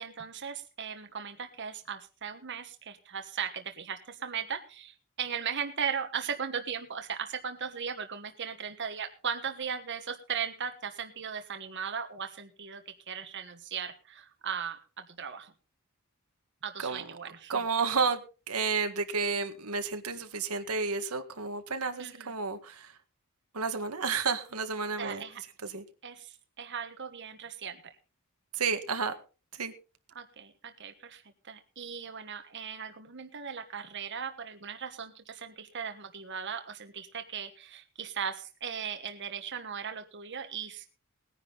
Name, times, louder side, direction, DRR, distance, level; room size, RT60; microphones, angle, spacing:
voice 1, 0.0-15.5 16.6-17.6 22.0-22.3 25.0-25.4 26.0-27.8 30.1-40.9, right 7 dB, 55° right, 1.3 m, -38 dB
voice 2, 17.5-18.2 18.5-22.9 23.5-25.2 25.6-25.8 28.5-29.1 29.6-29.7, right 5 dB, 90° right, 1.7 m, -31 dB
19.5 x 10.0 x 4.0 m
head